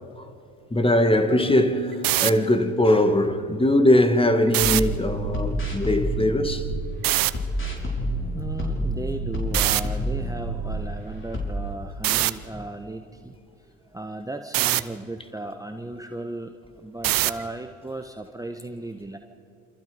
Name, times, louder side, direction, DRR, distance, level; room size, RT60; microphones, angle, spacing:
voice 1, 0.7-6.7, left 1 dB, 15° left, 2.0 m, -21 dB
Harp, 1.3-5.4 5.7-6.3 6.8-7.1, equal, 80° left, 6.5 m, -41 dB
sound 1, 1.9-2.3 4.5-4.8 7.0-7.3 9.5-9.8 12.0-12.3 14.5-14.8 17.0-17.4, right 17 dB, 55° right, 0.9 m, -22 dB
sound 2, 4.6-6.9 7.3-10.9 11.3-11.5, equal, 30° left, 6.4 m, -28 dB
voice 2, 8.3-13.3 13.9-19.2, right 2 dB, 10° right, 1.4 m, -36 dB
28.0 x 27.0 x 5.2 m
hypercardioid pair, 60°, 40 cm